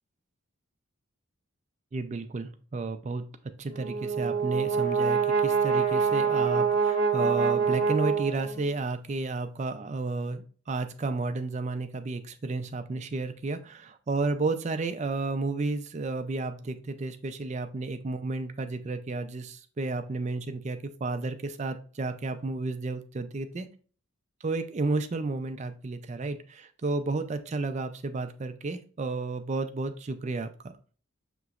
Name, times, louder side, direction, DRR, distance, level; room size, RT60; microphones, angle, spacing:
voice 1, 1.9-23.7 24.4-30.7, right 3 dB, 35° right, 9 dB, 0.4 m, -32 dB
Brass instrument, 3.7-8.8, right 5 dB, 50° right, 0.7 m, -26 dB
6.6 x 3.0 x 2.4 m, 0.41 s
head